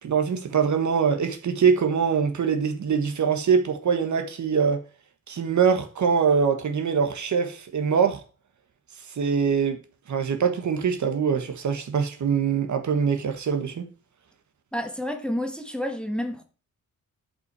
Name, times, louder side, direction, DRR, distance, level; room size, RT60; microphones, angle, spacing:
voice 1, 0.0-4.8 5.3-8.2 9.2-9.8 10.1-13.9, right 6 dB, 60° right, 1.4 m, -23 dB
voice 2, 14.7-16.4, equal, 5° left, 1.3 m, -29 dB
10.5 x 5.7 x 4.8 m
wide cardioid pair, 125°, 32 cm